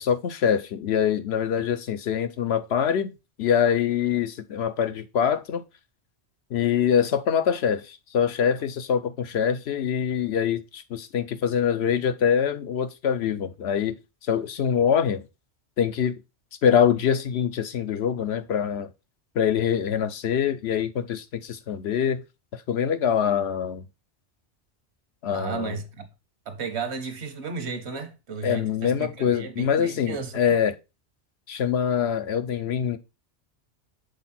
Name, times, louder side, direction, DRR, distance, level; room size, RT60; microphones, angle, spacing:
voice 1, 0.0-3.1 3.4-5.6 6.5-14.0 14.2-15.2 15.8-16.1 16.6-18.9 19.4-22.2 22.5-23.8 25.2-25.7 28.4-30.7 31.5-33.0, left 8 dB, 70° left, 0.9 m, -24 dB
voice 2, 25.3-26.1 26.5-30.5, right 5 dB, 70° right, 1.3 m, -34 dB
6.5 x 4.1 x 4.2 m
omnidirectional pair, 1.2 m